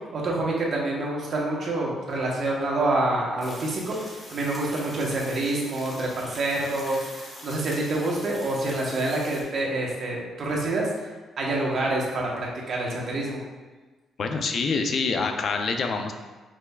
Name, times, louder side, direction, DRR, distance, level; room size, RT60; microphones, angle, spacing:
voice 1, 0.1-10.9 11.4-13.4, right 2 dB, 55° right, -3 dB, 1.1 m, -27 dB
sound 1, 3.4-9.4, left 1 dB, 20° left, 1.1 m, -43 dB
voice 2, 14.2-16.1, left 4 dB, 55° left, 5 dB, 0.5 m, -26 dB
5.9 x 3.3 x 2.3 m, 1.3 s
cardioid pair, 90°, 0 cm